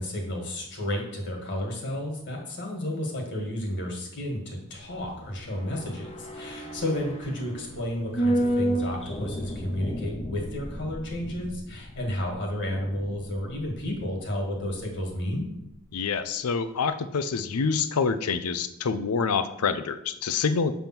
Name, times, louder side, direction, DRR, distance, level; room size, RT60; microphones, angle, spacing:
voice 1, 0.0-15.5, left 1 dB, 55° left, 1 dB, 1.9 m, -32 dB
sound 1, 4.8-15.2 15.5-15.6, right 1 dB, 30° left, 0.7 m, -33 dB
voice 2, 15.9-20.7, left 5 dB, 85° left, 11 dB, 0.5 m, -26 dB
7.1 x 3.5 x 5.9 m, 0.80 s
head